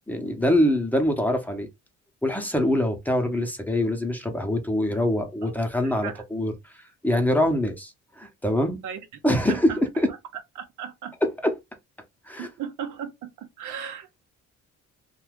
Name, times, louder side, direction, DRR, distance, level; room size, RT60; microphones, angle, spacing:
voice 1, 0.1-1.7 2.2-6.5 7.0-8.8 9.2-10.1 11.2-11.5 12.3-12.5, left 1 dB, 5° left, 0.8 m, -24 dB
voice 2, 5.8-6.2 8.8-9.0 9.5-11.1 12.4-14.2, right 8 dB, 80° right, 0.8 m, -37 dB
2.7 x 2.3 x 3.4 m
cardioid pair, 90°, 30 cm